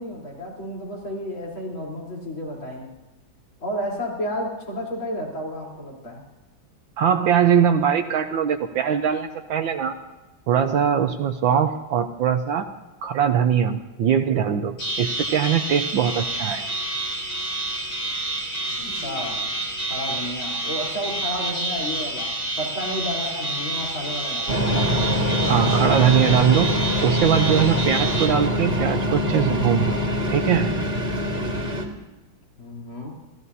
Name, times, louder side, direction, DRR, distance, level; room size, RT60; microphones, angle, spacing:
voice 1, 0.0-2.9 3.6-6.2 18.7-19.5 19.8-25.0 32.6-33.1, equal, 70° left, -3 dB, 4.7 m, -32 dB
voice 2, 7.0-9.9 10.5-12.6 13.0-16.6 25.5-26.7 27.0-30.0 30.3-30.8, right 8 dB, 70° right, 6 dB, 1.5 m, -21 dB
sound 1, 14.8-28.3, right 2 dB, 90° left, 6.7 m, -29 dB
sound 2, 24.5-31.8, equal, 30° right, 2.1 m, -24 dB
28.5 x 16.0 x 2.8 m, 1.1 s
omnidirectional pair, 2.3 m